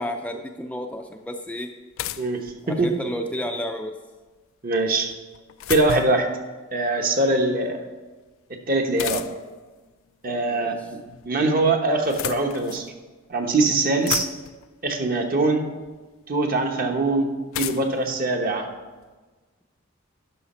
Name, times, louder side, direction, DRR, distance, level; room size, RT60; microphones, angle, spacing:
voice 1, 0.0-1.7 2.6-3.9 10.5-10.7, left 1 dB, 5° left, 4 dB, 0.4 m, -31 dB
sound 1, 0.9-1.0 2.0-3.1 5.1-6.3 9.0-9.6 10.7-11.3 11.9-12.9 13.5-13.6 13.8-14.7 15.8-15.9 17.5-19.1, left 11 dB, 85° left, 0.4 m, -33 dB
voice 2, 2.2-2.9 4.6-5.1 5.7-6.3 6.7-7.8 8.7-9.2 10.2-11.0 11.2-12.9 13.3-14.3 14.8-15.6 16.3-18.7, right 2 dB, 45° right, 3 dB, 1.1 m, -22 dB
11.5 x 5.7 x 4.3 m, 1.3 s
head